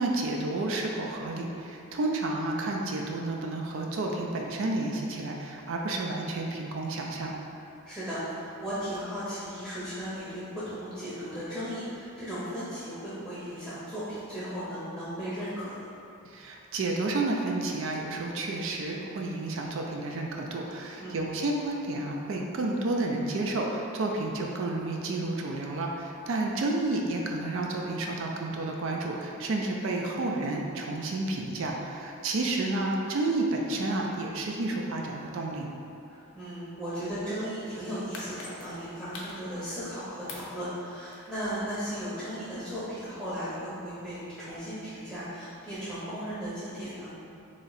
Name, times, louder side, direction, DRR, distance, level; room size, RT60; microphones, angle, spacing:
voice 1, 0.0-7.4 16.3-35.7, right 2 dB, 60° right, 0 dB, 0.4 m, -31 dB
voice 2, 7.8-15.9 21.0-21.2 36.1-47.1, equal, 10° right, -12 dB, 0.7 m, -36 dB
sound 1, 38.1-40.0 40.3-41.5 41.9-42.0, left 3 dB, 70° left, 0.5 m, -44 dB
3.1 x 2.7 x 3.9 m, 2.7 s
head